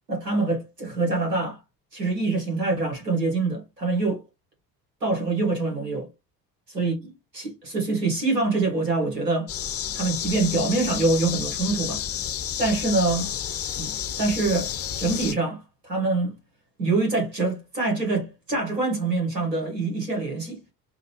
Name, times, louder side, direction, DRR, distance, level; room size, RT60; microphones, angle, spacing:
voice 1, 0.1-1.6 1.9-4.2 5.0-6.1 6.7-6.9 7.3-9.5 9.9-12.0 12.6-13.3 13.7-13.9 14.2-14.7 15.0-16.4 16.8-20.6, right 3 dB, 90° right, 1.3 m, -25 dB
sound 1, 9.5-15.3, left 9 dB, 30° left, 0.7 m, -31 dB
5.0 x 2.5 x 2.8 m
figure-of-eight pair, 55°, 47 cm